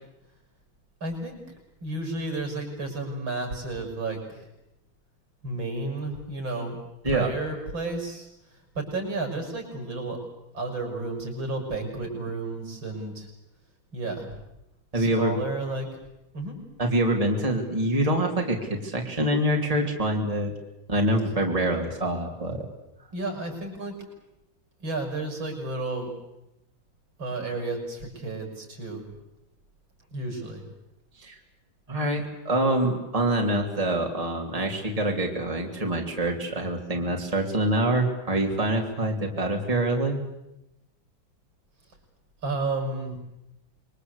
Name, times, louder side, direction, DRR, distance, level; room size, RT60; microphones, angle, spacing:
voice 1, 1.0-1.4 1.8-4.4 5.4-6.8 7.1-8.3 8.8-10.2 10.5-13.3 13.9-14.3 14.9-15.9 16.3-16.6 23.1-24.0 24.8-26.1 27.2-29.1 30.1-30.6 42.4-43.2, right 2 dB, 80° right, 2 dB, 7.2 m, -32 dB
voice 2, 14.9-15.4 16.8-20.5 20.9-22.6 31.2-31.3 31.9-40.2, right 1 dB, 15° right, 1 dB, 3.1 m, -25 dB
26.0 x 23.0 x 8.3 m, 0.88 s
omnidirectional pair, 2.1 m